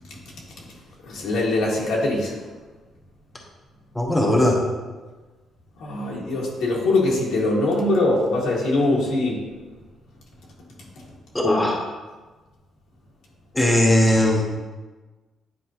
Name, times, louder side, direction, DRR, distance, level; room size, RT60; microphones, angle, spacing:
voice 1, 1.1-2.3 5.8-9.4, left 2 dB, 80° left, -3 dB, 1.7 m, -22 dB
voice 2, 3.9-4.6 11.3-11.8 13.5-14.4, left 1 dB, 10° left, -1 dB, 0.9 m, -18 dB
9.7 x 4.4 x 2.9 m, 1.3 s
cardioid pair, 135°, 0 cm